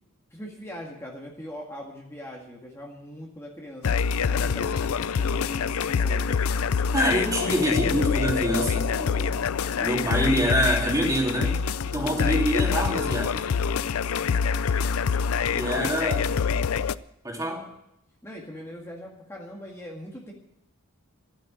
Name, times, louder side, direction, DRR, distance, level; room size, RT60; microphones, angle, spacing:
voice 1, 0.3-4.0 4.3-6.4 15.7-15.9 18.2-20.3, equal, 15° left, -2 dB, 1.9 m, -41 dB
sound 1, 3.8-16.9, left 6 dB, 85° left, 0.5 m, -25 dB
voice 2, 6.9-9.4 9.8-11.6 11.9-13.6 15.5-16.2 17.2-17.7, equal, 15° right, 0 dB, 2.9 m, -26 dB
13.5 x 8.9 x 8.8 m, 0.82 s
head